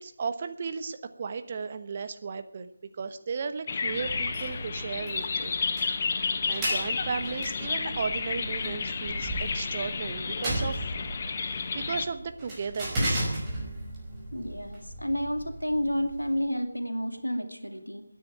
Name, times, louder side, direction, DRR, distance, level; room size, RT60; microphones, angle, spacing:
voice 1, 0.0-2.7 3.0-5.5 6.2-10.8 11.7-13.3, right 5 dB, 35° right, 10 dB, 1.1 m, -35 dB
sound 1, 3.7-12.1, left 5 dB, 35° left, 1.3 m, -31 dB
sound 2, 4.0-16.4, right 1 dB, 15° right, 5.5 m, -36 dB
voice 2, 14.3-18.0, equal, 85° left, 5 dB, 2.8 m, -30 dB
16.0 x 9.8 x 8.9 m, 0.66 s
figure-of-eight pair, 155°, 0 cm